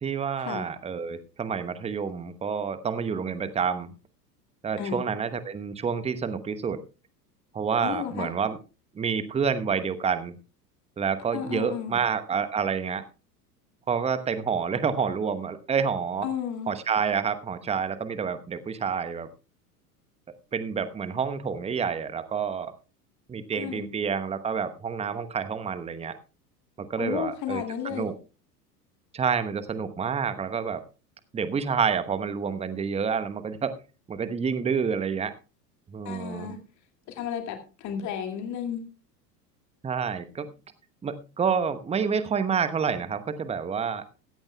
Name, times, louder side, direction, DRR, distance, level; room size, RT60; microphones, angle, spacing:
voice 1, 0.0-3.9 4.6-6.8 7.5-8.6 8.9-10.4 11.0-13.1 13.9-16.3 16.7-19.3 20.5-22.7 23.3-26.2 26.8-28.1 29.1-30.8 31.3-33.8 34.1-35.3 35.9-36.5 39.8-40.5 41.0-44.0, right 6 dB, 15° right, 13 dB, 1.0 m, -28 dB
voice 2, 7.8-8.3 11.3-12.0 16.2-16.7 23.5-23.9 27.0-28.1 36.0-36.6 37.1-38.9, left 8 dB, 35° left, 6 dB, 2.3 m, -33 dB
16.5 x 14.5 x 2.3 m, 0.32 s
figure-of-eight pair, 80°, 48 cm